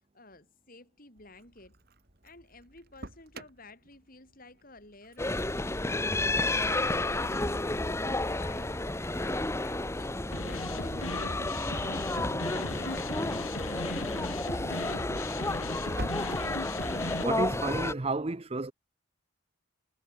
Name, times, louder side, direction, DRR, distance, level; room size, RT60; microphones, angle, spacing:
voice 1, 0.1-1.8 2.2-6.0 6.3-8.8 9.1-11.6 12.2-15.5, left 2 dB, 40° left, 6.4 m, -53 dB
Engine starting, 1.2-18.1, right 1 dB, 50° right, 5.2 m, -50 dB
sound 1, 5.2-17.9, left 2 dB, 15° left, 0.8 m, -31 dB
sound 2, 10.3-17.2, left 2 dB, 80° left, 4.9 m, -38 dB
voice 2, 17.2-18.7, right 3 dB, 30° right, 0.7 m, -31 dB
head